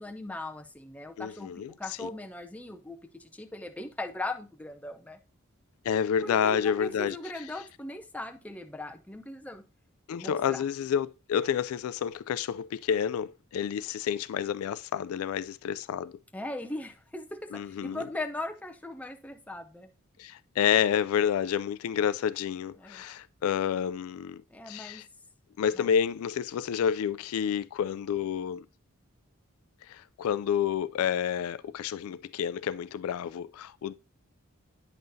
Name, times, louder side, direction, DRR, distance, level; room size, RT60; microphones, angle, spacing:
voice 1, 0.0-5.2 6.2-9.6 10.1-10.6 16.3-19.9 22.8-23.0 24.5-25.0 25.7-25.9, left 2 dB, 5° left, 0.5 m, -39 dB
voice 2, 1.2-1.7 2.0-2.1 5.8-7.2 10.1-16.2 17.5-18.0 20.2-25.1 25.6-28.6 29.9-33.9, left 8 dB, 85° left, 0.3 m, -29 dB
9.0 x 5.5 x 2.7 m
head